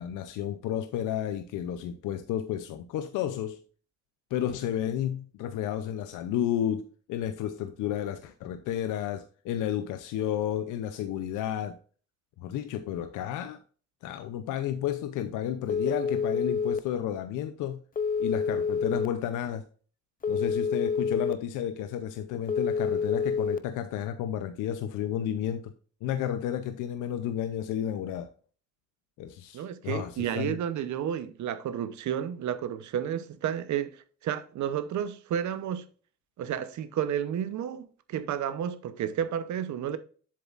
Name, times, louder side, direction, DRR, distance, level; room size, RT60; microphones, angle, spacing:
voice 1, 0.0-3.6 4.3-11.8 12.4-13.6 14.0-17.8 18.2-19.6 20.3-25.7 26.0-28.3 29.2-30.6, left 10 dB, 90° left, 0.6 m, -32 dB
Telephone, 15.7-16.8 18.0-19.1 20.2-21.3 22.5-23.6, left 5 dB, 30° left, 0.6 m, -28 dB
voice 2, 29.5-35.8 36.4-40.0, right 9 dB, 70° right, 0.8 m, -31 dB
7.6 x 7.0 x 2.5 m
cardioid pair, 90°, 30 cm